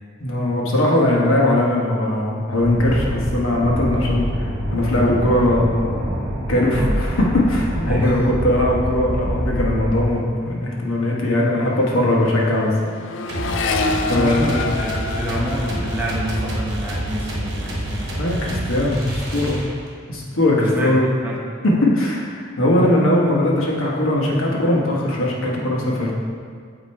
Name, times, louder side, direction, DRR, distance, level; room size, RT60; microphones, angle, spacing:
voice 1, 0.2-12.7 14.1-14.6 18.2-19.7 20.1-21.0 21.6-26.1, left 1 dB, 80° left, -3 dB, 1.1 m, -20 dB
sound 1, 2.6-10.1, equal, 30° right, 1.0 m, -26 dB
voice 2, 7.9-8.3 13.8-18.1 20.5-21.4, equal, 10° right, -5 dB, 0.7 m, -27 dB
Accelerating revving vroom, 10.5-10.8 11.0-18.5 18.9-19.5, left 3 dB, 65° left, 0.4 m, -29 dB
sound 2, 13.3-20.0, right 1 dB, 50° right, 1.2 m, -28 dB
8.4 x 2.9 x 4.4 m, 2.1 s
head